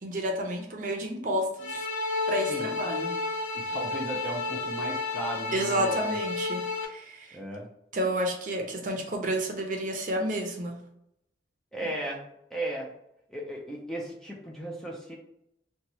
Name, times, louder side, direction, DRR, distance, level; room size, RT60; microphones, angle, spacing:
voice 1, 0.0-1.9 2.3-3.2 5.5-7.4 7.9-10.8 11.8-11.9, right 1 dB, 45° right, 1 dB, 0.6 m, -30 dB
sound 1, 1.6-6.8, left 3 dB, 65° left, 0.6 m, -31 dB
voice 2, 2.5-2.8 3.5-6.1 7.3-7.7 11.7-12.9 13.3-15.2, right 1 dB, 5° left, -2 dB, 0.4 m, -36 dB
2.8 x 2.3 x 4.1 m, 0.79 s
head